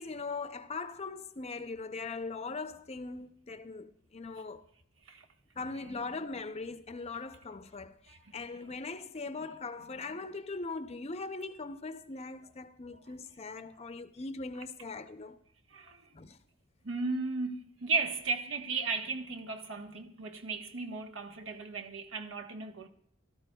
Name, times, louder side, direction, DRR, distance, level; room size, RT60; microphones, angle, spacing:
voice 1, 0.0-4.6 5.6-15.4 16.1-16.4, left 3 dB, 30° left, 0.6 m, -40 dB
voice 2, 15.7-16.1 16.8-22.9, right 4 dB, 80° right, 1.1 m, -35 dB
16.5 x 13.0 x 2.3 m
head